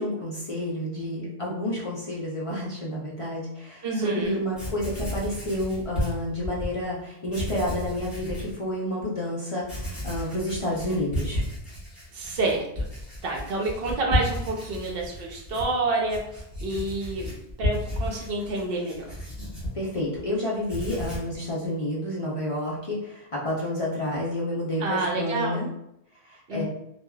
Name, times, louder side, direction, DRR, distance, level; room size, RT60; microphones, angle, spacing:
voice 1, 0.0-11.4 19.7-25.7 26.3-26.6, left 1 dB, 40° left, -5 dB, 0.5 m, -30 dB
voice 2, 3.8-4.4 12.1-12.9 13.2-16.2 16.6-17.3 17.6-19.0 24.8-25.6 26.5-26.6, right 2 dB, 65° right, 0 dB, 0.8 m, -28 dB
Writing, 4.2-4.3 4.5-6.7 7.2-8.5 9.0-9.1 9.6-20.3 20.6-21.4, equal, ahead, 1.4 m, -33 dB
3.3 x 2.2 x 2.3 m, 0.81 s
omnidirectional pair, 1.1 m